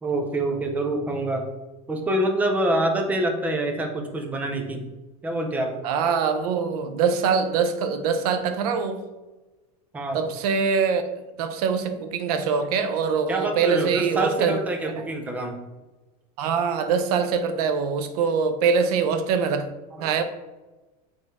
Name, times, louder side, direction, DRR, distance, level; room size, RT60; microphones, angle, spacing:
voice 1, 0.0-1.4 1.9-4.8 5.2-5.7 9.9-10.2 13.3-15.5 19.9-20.1, right 1 dB, 10° right, 4 dB, 0.4 m, -26 dB
voice 2, 5.8-9.1 10.1-11.1 11.4-14.6 16.4-19.7 20.0-20.2, right 6 dB, 80° right, 9 dB, 0.6 m, -23 dB
3.7 x 3.6 x 4.0 m, 1.2 s
supercardioid pair, 175°, 19 cm